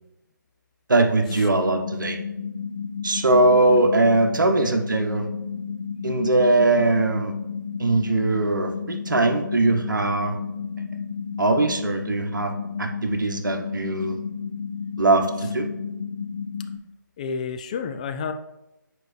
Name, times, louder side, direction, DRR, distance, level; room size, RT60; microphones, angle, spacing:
voice 1, 0.9-2.2 3.0-5.3 6.0-7.3 7.8-10.3 11.4-12.5 12.8-14.2 15.0-15.7, right 2 dB, 70° right, 4 dB, 1.1 m, -21 dB
sound 1, 1.2-16.8, left 6 dB, 50° left, 1.2 m, -32 dB
voice 2, 17.2-18.3, left 6 dB, 20° left, 8 dB, 0.3 m, -30 dB
8.0 x 4.6 x 3.3 m, 0.95 s
figure-of-eight pair, 150°, 11 cm